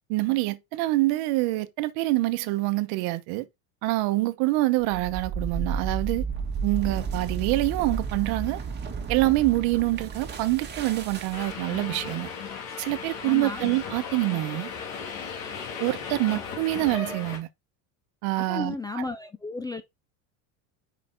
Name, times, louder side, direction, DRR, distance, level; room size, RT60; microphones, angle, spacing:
voice 1, 0.1-3.4 3.8-6.3 6.6-8.6 9.1-12.3 12.8-14.7 15.8-17.5 18.2-18.7, right 19 dB, 65° right, 0.9 m, -26 dB
sound 1, 4.8-11.7, right 5 dB, 25° right, 1.7 m, -32 dB
Subway metro underground, 11.3-17.4, left 5 dB, 80° left, 2.0 m, -36 dB
voice 2, 13.2-13.6 18.4-19.8, left 3 dB, 10° left, 0.3 m, -33 dB
5.0 x 4.4 x 4.3 m
supercardioid pair, 125°, 40 cm